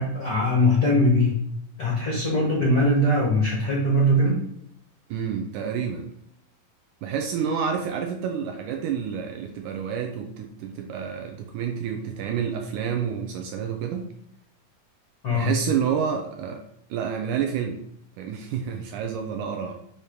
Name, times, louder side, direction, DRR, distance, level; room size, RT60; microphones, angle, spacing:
voice 1, 0.0-1.4 1.8-4.4 15.2-15.5, left 1 dB, 85° left, -4 dB, 0.8 m, -21 dB
voice 2, 5.1-6.1 7.0-14.1 15.3-16.6 16.9-17.8 18.2-19.7, right 7 dB, 80° right, 4 dB, 1.8 m, -29 dB
6.5 x 2.9 x 5.0 m, 0.74 s
omnidirectional pair, 4.0 m